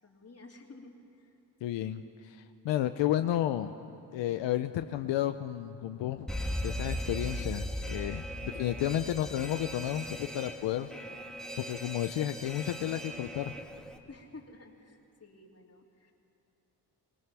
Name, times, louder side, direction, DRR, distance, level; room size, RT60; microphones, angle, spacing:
voice 1, 0.0-1.4 14.1-16.1, left 2 dB, 35° left, 1 dB, 2.9 m, -52 dB
voice 2, 1.6-3.7 4.1-6.3 6.6-10.9 11.6-13.5, left 12 dB, 85° left, 9 dB, 0.7 m, -32 dB
Alarm, 6.3-14.0, equal, ahead, 1.7 m, -38 dB
22.5 x 18.5 x 6.2 m, 2.7 s
cardioid pair, 70°, 43 cm